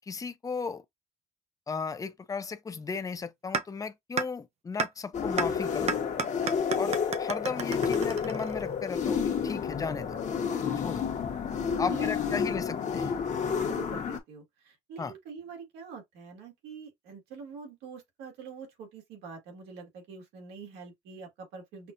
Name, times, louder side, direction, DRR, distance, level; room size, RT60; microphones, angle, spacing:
voice 1, 0.1-0.8 1.7-6.0 6.8-10.2 10.8-11.0 11.8-13.2 15.0-15.1, left 5 dB, 20° left, 0.6 m, -35 dB
sound 1, 3.5-3.6 4.2-4.3 4.8-4.9 5.4-5.5 5.9-8.8, right 5 dB, 40° right, 0.6 m, -31 dB
sound 2, 5.1-14.2, left 6 dB, 45° left, 1.1 m, -30 dB
voice 2, 6.4-6.9 10.6-11.1 11.6-12.4 13.4-21.9, right 5 dB, 90° right, 2.0 m, -45 dB
5.7 x 2.4 x 2.6 m
cardioid pair, 110°, 17 cm